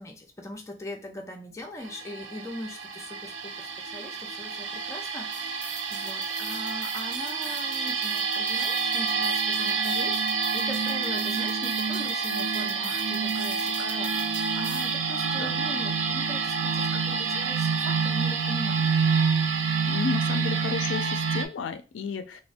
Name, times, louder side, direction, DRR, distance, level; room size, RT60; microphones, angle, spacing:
voice 1, 0.0-19.0, left 1 dB, 15° left, 1 dB, 0.5 m, -40 dB
sound 1, 1.8-21.5, right 5 dB, 90° right, 0.4 m, -28 dB
sound 2, 5.3-14.9, right 3 dB, 65° right, 0.9 m, -44 dB
voice 2, 19.9-22.4, left 5 dB, 85° left, 9 dB, 0.4 m, -32 dB
3.5 x 2.1 x 2.5 m, 0.31 s
head